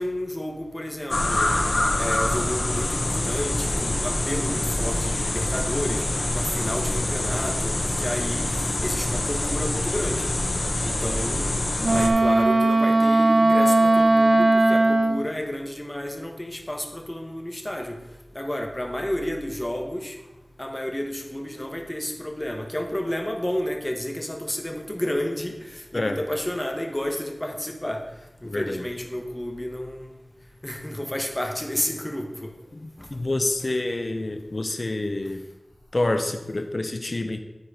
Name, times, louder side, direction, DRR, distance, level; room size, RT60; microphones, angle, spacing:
voice 1, 0.0-1.6 2.0-6.0 6.3-8.5 8.8-10.3 10.8-11.6 11.9-18.0 18.3-20.1 20.6-25.6 25.9-28.0 28.4-30.2 30.6-32.5, left 1 dB, 20° left, 3 dB, 1.2 m, -31 dB
sound 1, 1.1-12.1, left 1 dB, 75° left, 1.2 m, -25 dB
Wind instrument woodwind instrument, 11.8-15.3, right 2 dB, 65° right, 0.4 m, -18 dB
voice 2, 25.9-26.2 28.4-28.9 32.7-35.4 35.9-37.4, left 2 dB, 55° left, 7 dB, 0.7 m, -27 dB
9.9 x 4.5 x 5.0 m, 1.0 s
wide cardioid pair, 60°, 0 cm